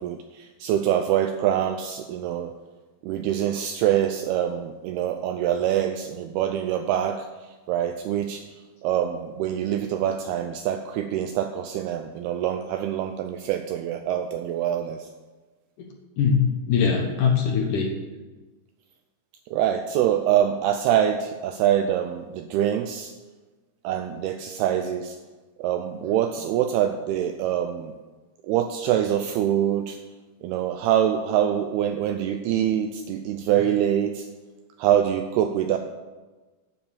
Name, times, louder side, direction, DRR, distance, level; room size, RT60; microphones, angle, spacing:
voice 1, 0.0-2.5 3.0-7.3 7.7-8.4 8.8-15.0 19.5-23.1 23.8-25.2 25.6-27.9 28.5-30.0 30.4-34.3 34.8-35.8, right 10 dB, 85° right, 7 dB, 2.3 m, -25 dB
voice 2, 16.2-17.9, left 6 dB, 70° left, 2 dB, 2.0 m, -22 dB
9.7 x 8.7 x 7.0 m, 1.2 s
omnidirectional pair, 5.1 m